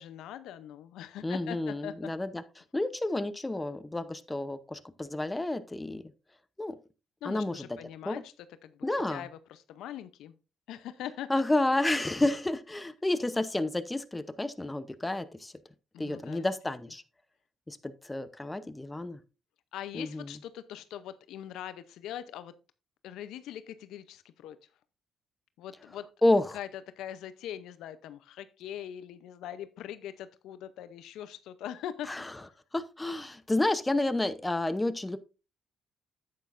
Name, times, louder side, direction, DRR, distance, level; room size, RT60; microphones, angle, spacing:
voice 1, 0.0-2.1 7.2-8.3 8.6-10.3 10.7-11.3 15.9-16.4 19.7-22.5 23.0-24.6 25.6-26.1 26.5-26.7 27.0-32.3, left 11 dB, 85° left, 0.6 m, -42 dB
voice 2, 1.2-2.4 2.7-6.1 6.6-6.8 7.2-7.7 8.0-8.2 8.8-9.2 11.3-15.5 16.0-17.0 17.7-19.2 19.9-20.3 26.2-26.6 32.1-32.3 32.7-35.2, left 2 dB, 15° left, 0.8 m, -30 dB
9.7 x 8.5 x 2.5 m
cardioid pair, 90°, 0 cm